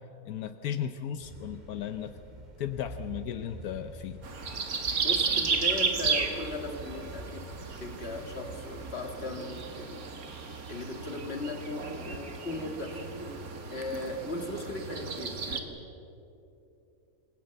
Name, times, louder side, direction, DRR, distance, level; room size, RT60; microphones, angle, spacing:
voice 1, 0.3-2.1 2.6-4.2, left 9 dB, 80° left, 9 dB, 1.3 m, -35 dB
sound 1, 1.2-9.5, right 1 dB, 30° right, 2.6 m, -47 dB
sound 2, 4.2-15.6, right 5 dB, 75° right, 2.2 m, -33 dB
voice 2, 4.9-7.5 7.8-10.1 10.4-13.1 13.7-15.8, left 2 dB, 45° left, 4 dB, 2.5 m, -38 dB
27.5 x 18.5 x 7.8 m, 2.9 s
omnidirectional pair, 1.6 m